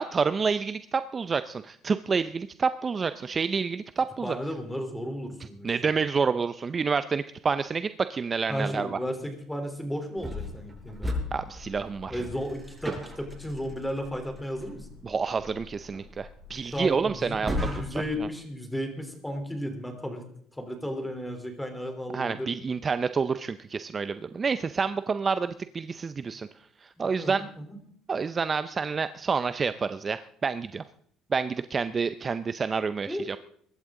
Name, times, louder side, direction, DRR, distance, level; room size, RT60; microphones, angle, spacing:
voice 1, 0.0-4.4 5.6-9.0 11.3-12.2 15.0-17.5 22.1-26.5 26.8-27.4 28.1-30.8 31.3-33.4, right 5 dB, 30° right, 12 dB, 0.5 m, -28 dB
voice 2, 4.2-5.7 8.5-11.1 12.1-14.9 16.7-20.2 20.6-22.5 27.0-27.8 33.1-33.3, equal, 5° left, 5 dB, 3.5 m, -34 dB
sound 1, 10.2-18.2, left 1 dB, 15° right, 6.8 m, -37 dB
22.5 x 12.0 x 3.8 m, 0.64 s
cardioid pair, 105°, 0 cm